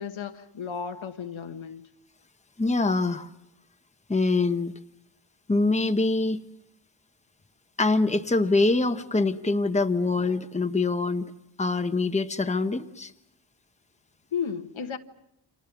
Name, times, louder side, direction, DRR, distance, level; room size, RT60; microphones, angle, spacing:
voice 1, 0.0-1.8 14.3-15.0, left 7 dB, 90° left, 1.4 m, -33 dB
voice 2, 2.6-3.3 4.1-4.7 5.5-6.4 7.8-11.3 11.6-13.1, left 3 dB, 15° left, 0.9 m, -24 dB
29.5 x 26.0 x 6.0 m
wide cardioid pair, 115°, 46 cm